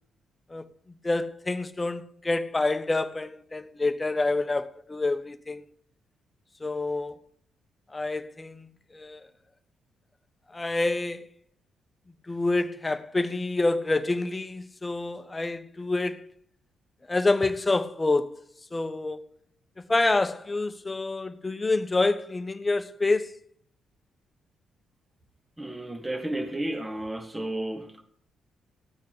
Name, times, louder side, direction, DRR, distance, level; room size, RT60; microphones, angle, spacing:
voice 1, 1.0-5.6 6.6-7.2 7.9-8.7 8.9-9.2 10.5-11.3 12.3-16.2 17.1-18.4 18.7-19.2 19.9-23.4, left 2 dB, 25° left, 1.2 m, -27 dB
voice 2, 25.6-28.0, right 1 dB, 15° right, 2.0 m, -32 dB
16.0 x 9.3 x 5.1 m
hypercardioid pair, 40°, 0 cm